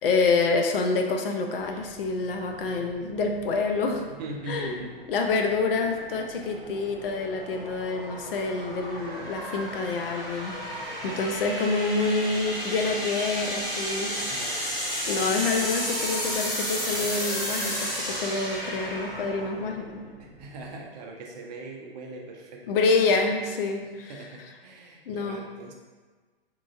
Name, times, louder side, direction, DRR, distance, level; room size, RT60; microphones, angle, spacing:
voice 1, 0.0-4.1 4.5-4.8 5.1-10.6 11.0-14.6 15.1-20.0 22.7-24.1 25.1-25.4, left 3 dB, 65° left, 3 dB, 0.5 m, -27 dB
sound 1, 1.6-20.7, equal, 15° left, 0.9 m, -34 dB
voice 2, 4.1-4.9 10.9-11.3 14.1-14.7 20.2-22.6 23.8-25.7, right 2 dB, 45° right, 0 dB, 0.5 m, -41 dB
3.0 x 2.4 x 2.3 m, 1.4 s
hypercardioid pair, 120°, 31 cm